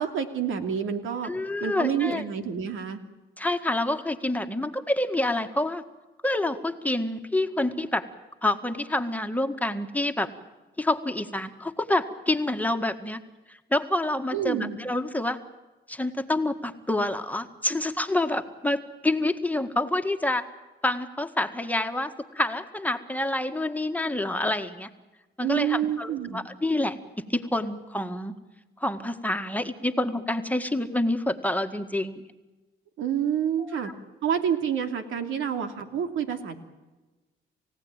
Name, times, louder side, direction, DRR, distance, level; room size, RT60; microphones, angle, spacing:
voice 1, 0.0-1.3 1.6-3.0 14.3-14.8 25.4-26.4 33.0-33.9 34.2-36.6, right 8 dB, 80° right, 6 dB, 2.8 m, -28 dB
voice 2, 1.2-2.2 3.4-5.8 6.2-8.0 8.4-10.3 10.8-13.2 13.5-15.4 15.9-20.5 20.8-24.9 25.4-27.0 27.3-28.3 28.8-32.2 33.6-33.8, left 1 dB, 10° left, 7 dB, 1.8 m, -27 dB
29.5 x 16.5 x 9.0 m, 1.1 s
cardioid pair, 90°, 20 cm